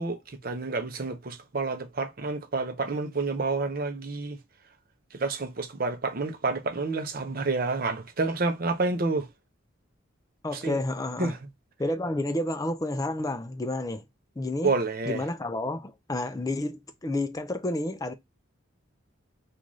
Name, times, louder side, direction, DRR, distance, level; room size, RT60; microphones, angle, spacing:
voice 1, 0.0-4.4 5.1-9.3 10.5-10.8 11.2-11.4 14.6-15.2, right 3 dB, 45° right, 0.6 m, -29 dB
voice 2, 10.4-11.3 11.8-14.0 14.4-14.7 15.1-18.1, left 1 dB, 15° left, 0.4 m, -30 dB
3.9 x 2.4 x 3.0 m
head